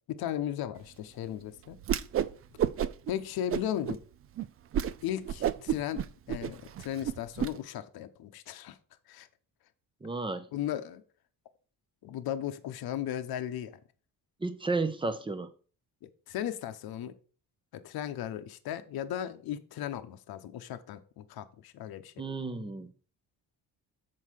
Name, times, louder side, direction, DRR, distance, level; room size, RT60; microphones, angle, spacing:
voice 1, 0.1-1.8 3.1-4.0 5.0-8.8 9.1-9.3 10.5-11.0 12.0-13.8 16.3-17.2 17.7-22.2, left 11 dB, 70° left, 0.9 m, -36 dB
Whoosh swoosh swish, 1.8-2.3 2.6-3.1 3.5-4.0 4.4-4.5 4.7-4.9 5.3-7.5, right 10 dB, 40° right, 0.4 m, -30 dB
voice 2, 10.0-10.5 14.4-15.5 22.2-22.9, right 3 dB, 15° right, 0.8 m, -32 dB
7.5 x 4.6 x 6.3 m
cardioid pair, 145°, 38 cm